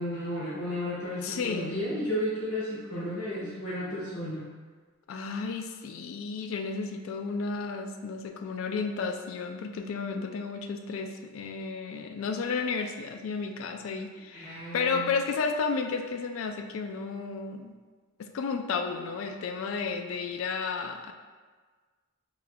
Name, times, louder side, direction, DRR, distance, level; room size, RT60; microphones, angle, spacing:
voice 1, 0.0-4.4 14.3-15.1, left 1 dB, 80° left, -13 dB, 1.2 m, -33 dB
voice 2, 1.2-1.7 5.1-17.7 18.2-21.1, left 4 dB, 65° left, 5 dB, 0.3 m, -32 dB
4.9 x 2.4 x 2.2 m, 1.5 s
head